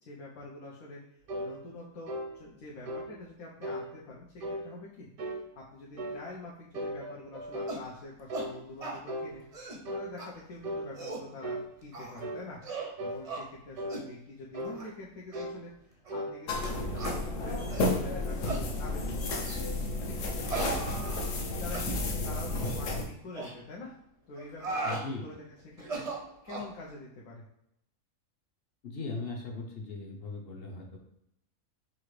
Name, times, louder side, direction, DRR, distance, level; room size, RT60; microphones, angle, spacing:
voice 1, 0.1-9.4 9.9-12.6 13.0-19.6 20.1-21.2 21.6-23.9 24.3-25.4 25.8-27.4, left 2 dB, 90° left, -4 dB, 1.2 m, -46 dB
sound 1, 1.3-1.5 2.1-2.3 2.9-3.1 3.6-3.9 4.4-4.7 5.2-5.5 6.0-6.2 6.7-7.8 8.3-8.5 9.1-9.3 9.9-10.1 10.6-10.9 11.4-11.7 12.2-12.4 13.0-13.2 13.8-14.0 14.5-14.8 15.3-15.6 16.1-16.3, equal, 90° right, 1.3 m, -36 dB
sound 2, 7.7-7.9 8.3-8.5 8.8-9.0 9.4-9.8 10.2-10.3 10.8-11.3 11.9-12.2 12.6-12.9 13.3-13.5 13.9-14.1 14.6-14.9 15.3-15.5 16.1-16.2 17.0-17.2 17.7-17.9 18.5-18.7 19.4-19.7 20.5-21.4 21.7-21.9 22.5-22.8 23.3-23.5 24.4-25.1 25.8-26.7, right 3 dB, 45° right, 0.5 m, -37 dB
sound 3, 16.5-23.1, left 2 dB, 70° left, 1.0 m, -32 dB
voice 2, 24.8-25.3 28.8-31.0, left 3 dB, 55° left, 1 dB, 0.7 m, -38 dB
5.6 x 2.5 x 3.1 m, 0.79 s
omnidirectional pair, 1.5 m